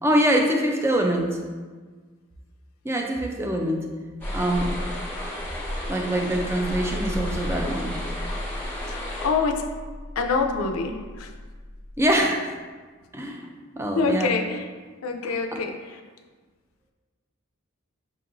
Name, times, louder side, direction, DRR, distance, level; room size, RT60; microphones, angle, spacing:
voice 1, 0.0-1.4 2.8-3.8 4.3-4.8 5.9-8.0 12.0-12.5 13.1-13.5 13.8-14.3 15.2-15.4, right 1 dB, 10° right, 1 dB, 0.4 m, -24 dB
sound 1, 4.2-9.3, left 1 dB, 10° left, 1.1 m, -32 dB
sound 2, 6.7-12.2, left 1 dB, 60° right, 1.0 m, -36 dB
voice 2, 8.9-9.6 10.2-11.3 13.9-14.6 15.0-15.7, left 4 dB, 85° left, 4 dB, 0.4 m, -25 dB
6.0 x 2.9 x 2.5 m, 1.4 s
head